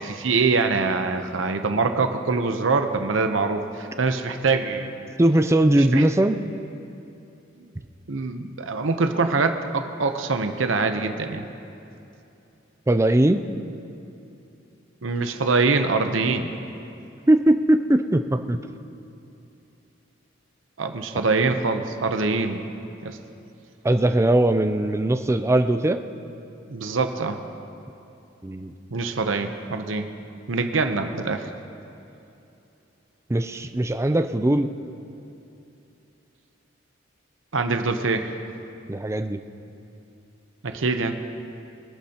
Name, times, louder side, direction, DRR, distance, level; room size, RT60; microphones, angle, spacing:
voice 1, 0.0-4.9 5.8-6.1 8.1-11.5 15.0-16.5 20.8-22.6 23.0-23.2 26.7-27.4 28.9-30.1 30.5-31.5 37.5-38.3 40.6-41.2, right 4 dB, 90° right, 6 dB, 0.8 m, -24 dB
voice 2, 5.2-6.4 12.9-13.4 17.3-18.6 23.8-26.0 28.4-28.7 33.3-34.7 38.9-39.4, right 1 dB, 15° right, 8 dB, 0.4 m, -20 dB
24.5 x 11.5 x 2.9 m, 2.8 s
head